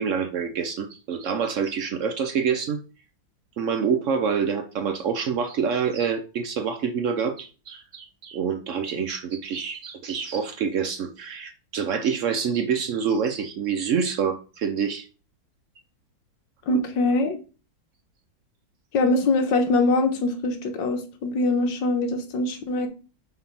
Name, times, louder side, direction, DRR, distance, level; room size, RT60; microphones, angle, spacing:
voice 1, 0.0-2.8 3.6-15.1 16.7-16.8, right 6 dB, 85° right, 7 dB, 0.6 m, -26 dB
voice 2, 16.7-17.3 18.9-22.9, left 2 dB, 70° left, 6 dB, 1.7 m, -23 dB
4.7 x 4.0 x 5.6 m, 0.34 s
omnidirectional pair, 2.1 m